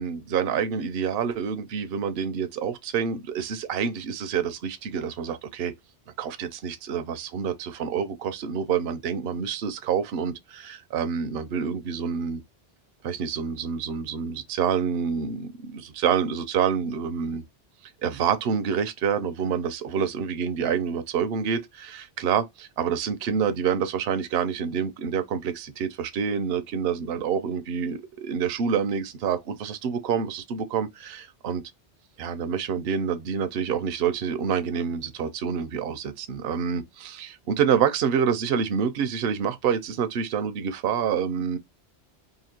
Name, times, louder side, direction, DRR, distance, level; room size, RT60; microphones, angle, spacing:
voice 1, 0.0-5.7 6.2-12.4 13.0-17.4 18.0-31.6 32.2-41.6, right 7 dB, 65° right, 0.8 m, -27 dB
2.9 x 2.8 x 4.3 m
omnidirectional pair, 1.2 m